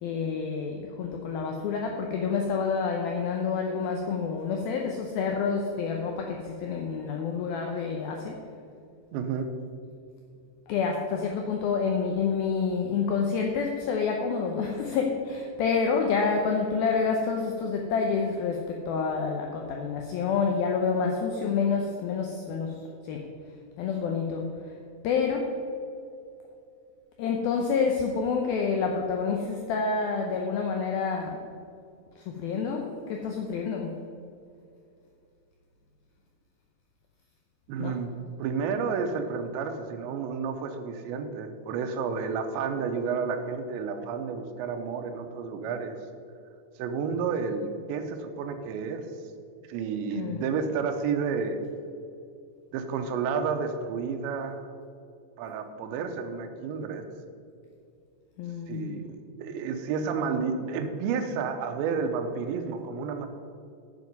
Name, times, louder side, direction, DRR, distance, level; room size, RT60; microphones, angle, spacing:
voice 1, 0.0-8.4 10.7-23.3 23.8-24.7 25.0-25.5 27.2-31.4 32.2-34.0 37.8-38.0 50.1-50.4 58.4-59.1, left 5 dB, 85° left, 2 dB, 2.1 m, -28 dB
voice 2, 9.1-9.5 37.7-38.1 38.4-46.0 46.8-49.1 49.7-51.6 52.7-54.7 55.4-57.0 58.7-63.3, right 5 dB, 85° right, 7 dB, 3.0 m, -31 dB
9.3 x 7.6 x 5.3 m, 2.5 s
omnidirectional pair, 5.2 m